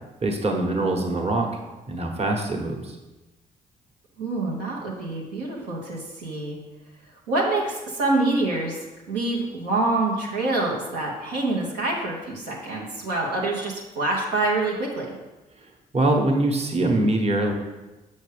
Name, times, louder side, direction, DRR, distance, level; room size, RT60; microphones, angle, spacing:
voice 1, 0.2-1.5 1.9-2.9 15.9-17.5, right 2 dB, 30° right, 1 dB, 1.2 m, -23 dB
voice 2, 4.2-6.6 7.3-8.8 9.1-15.1, right 2 dB, 80° right, -3 dB, 1.1 m, -26 dB
6.9 x 6.4 x 3.3 m, 1.1 s
figure-of-eight pair, 40°, 21 cm